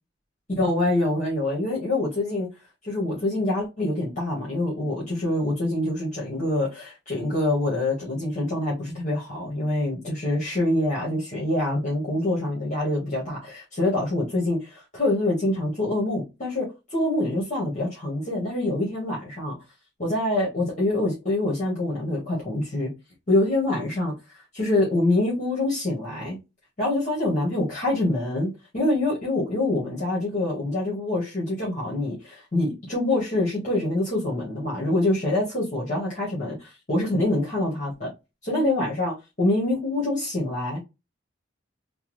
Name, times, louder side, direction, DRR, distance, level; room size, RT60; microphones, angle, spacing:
voice 1, 0.6-2.5 2.8-19.5 20.0-22.9 23.3-24.1 24.5-26.4 26.8-38.1 38.4-40.8, left 1 dB, 40° left, 1.2 m, -25 dB
3.5 x 2.0 x 3.0 m
head